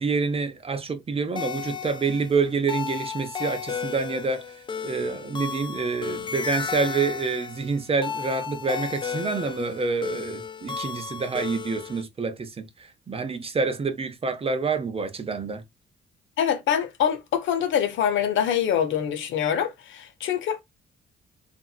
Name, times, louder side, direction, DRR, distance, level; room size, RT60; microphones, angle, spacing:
voice 1, 0.0-4.4 4.8-12.6 13.1-15.6, right 4 dB, 30° right, 0.6 m, -27 dB
sound 1, 1.4-12.0, left 7 dB, 25° left, 0.3 m, -34 dB
voice 2, 16.4-20.6, left 9 dB, 75° left, 0.7 m, -25 dB
2.7 x 2.5 x 2.3 m
cardioid pair, 90°, 20 cm